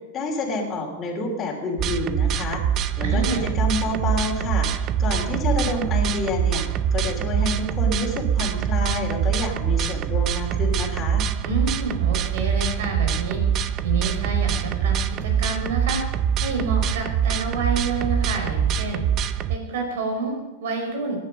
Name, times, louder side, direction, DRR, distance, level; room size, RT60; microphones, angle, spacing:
voice 1, 0.1-2.6 3.0-11.2, left 2 dB, 25° left, -1 dB, 3.2 m, -28 dB
sound 1, 1.8-19.6, right 8 dB, 30° right, 0.5 m, -24 dB
voice 2, 3.0-3.5 11.4-13.4 13.8-16.0 16.4-19.0 19.5-21.2, right 3 dB, 70° right, 3 dB, 5.1 m, -28 dB
16.5 x 10.0 x 5.2 m, 1.2 s
supercardioid pair, 150°, 0 cm